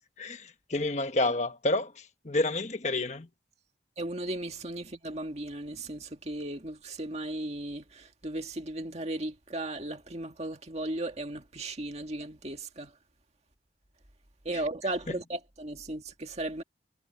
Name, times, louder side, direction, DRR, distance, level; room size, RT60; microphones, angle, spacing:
voice 1, 0.2-3.3, left 2 dB, 40° left, 1.3 m, -29 dB
voice 2, 4.0-12.9 14.4-16.6, right 1 dB, 35° right, 2.0 m, -36 dB
head